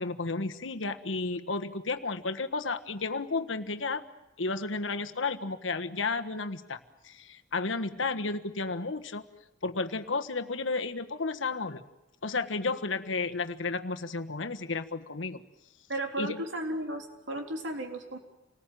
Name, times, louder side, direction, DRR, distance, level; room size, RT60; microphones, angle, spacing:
voice 1, 0.0-4.0 4.4-6.8 7.0-9.2 9.6-11.8 12.2-15.4 16.2-16.4, left 3 dB, 85° left, 7 dB, 1.4 m, -32 dB
voice 2, 15.9-18.2, right 1 dB, 70° right, 3 dB, 3.7 m, -34 dB
27.5 x 19.5 x 9.2 m, 0.98 s
head